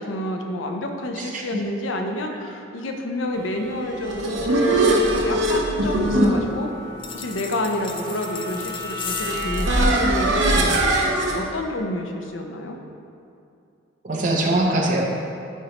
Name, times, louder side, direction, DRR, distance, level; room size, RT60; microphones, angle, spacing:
voice 1, 0.0-6.7 7.1-10.9 11.3-12.8, left 1 dB, 75° left, 3 dB, 0.6 m, -29 dB
voice 2, 1.2-1.6 14.0-15.1, right 2 dB, 40° right, -1 dB, 0.7 m, -22 dB
sound 1, 3.8-11.4, right 1 dB, 70° right, 0.8 m, -22 dB
sound 2, 7.0-9.7, left 6 dB, 25° left, 0.3 m, -36 dB
9.1 x 4.4 x 2.9 m, 2.5 s
head